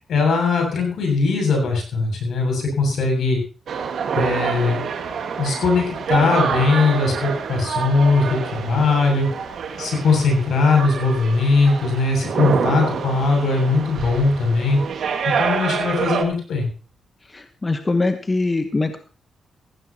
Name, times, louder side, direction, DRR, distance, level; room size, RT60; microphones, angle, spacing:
voice 1, 0.1-3.4 4.2-4.8 5.4-9.3 9.8-14.8 15.4-16.7, left 3 dB, 75° left, 2 dB, 7.5 m, -20 dB
sound 1, 3.7-16.2, right 6 dB, 70° right, 2.0 m, -26 dB
voice 2, 17.3-19.0, left 3 dB, 25° left, 7 dB, 1.2 m, -22 dB
15.5 x 15.5 x 3.0 m, 0.36 s
cardioid pair, 85°, 0 cm